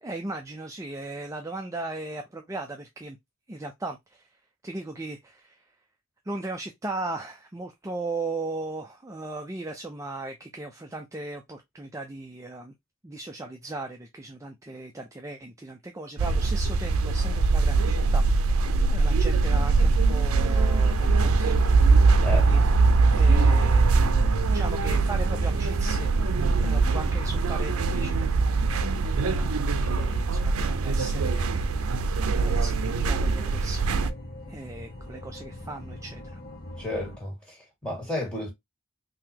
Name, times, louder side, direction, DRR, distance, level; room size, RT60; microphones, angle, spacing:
voice 1, 0.0-3.2 3.5-4.3 4.6-5.8 6.2-12.7 13.0-18.5 18.9-22.6 23.1-24.1 24.5-28.3 29.2-34.1 34.5-36.2, right 2 dB, 15° right, 0.4 m, -37 dB
sound 1, 16.2-34.1, right 3 dB, 85° right, 0.5 m, -22 dB
sound 2, 21.7-37.2, left 1 dB, 45° left, 0.9 m, -42 dB
voice 2, 36.8-38.5, left 1 dB, 5° left, 1.8 m, -32 dB
3.9 x 2.8 x 2.8 m
head